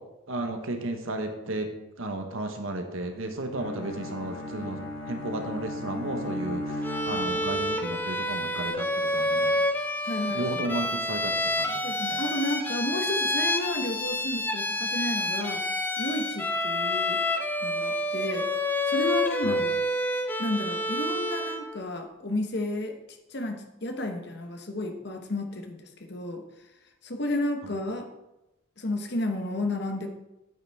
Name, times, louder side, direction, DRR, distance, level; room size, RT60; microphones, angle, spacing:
voice 1, 0.3-1.7 2.0-4.8 5.1-9.6 10.2-11.8 12.1-12.2 19.4-19.6, right 2 dB, 85° right, 5 dB, 1.3 m, -33 dB
Bowed string instrument, 3.5-8.0, left 1 dB, 90° left, 2.5 m, -35 dB
Bowed string instrument 2, 6.8-21.7, left 1 dB, 10° left, 0.5 m, -28 dB
voice 2, 10.0-10.7 11.8-15.7 16.0-17.2 17.6-18.5 18.9-19.8 20.4-22.9 23.3-26.4 27.0-28.1 28.8-30.1, left 1 dB, 55° left, 5 dB, 1.0 m, -32 dB
9.0 x 8.7 x 3.6 m, 0.95 s
head